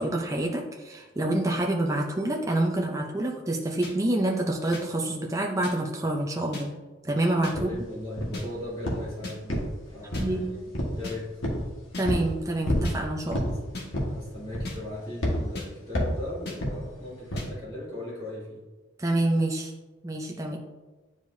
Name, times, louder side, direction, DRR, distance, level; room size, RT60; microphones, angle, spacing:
voice 1, 0.0-6.7 7.0-7.7 10.2-10.5 12.0-13.5 19.0-19.7 20.0-20.6, right 1 dB, 15° right, 0 dB, 0.6 m, -27 dB
sound 1, 3.8-3.9 4.7-4.8 5.6-5.7 6.5-6.7 7.4-7.6 8.3-8.5 9.2-9.4 10.1-10.3 11.0-11.2 11.9-12.1 12.8-13.0 13.7-13.9 14.6-14.8 15.5-15.7 16.5-16.6 17.4-17.5, left 3 dB, 55° left, 1.5 m, -36 dB
sound 2, 7.5-7.7 8.2-8.5 8.8-9.1 9.5-10.4 10.7-11.0 11.4-11.7 12.0-12.3 12.7-12.9 13.3-13.5 13.9-14.2 14.5-14.8 15.2-15.4 15.9-16.2 16.6-16.8 17.3-17.5, equal, 75° left, 1.6 m, -28 dB
voice 2, 7.5-9.6 9.9-10.7 10.9-11.3 13.4-13.6 14.0-18.6, left 1 dB, 20° left, -9 dB, 2.2 m, -38 dB
10.0 x 4.9 x 2.7 m, 1.2 s
head